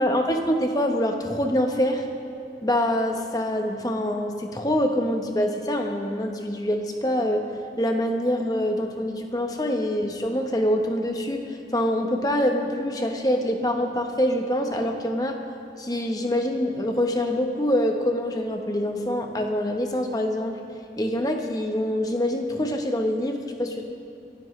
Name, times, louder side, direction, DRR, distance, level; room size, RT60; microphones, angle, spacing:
voice 1, 0.0-2.1 2.6-7.4 7.8-11.4 11.7-15.4 15.8-20.6 21.0-23.8, equal, 20° left, 3 dB, 1.0 m, -25 dB
24.0 x 12.5 x 3.2 m, 2.7 s
head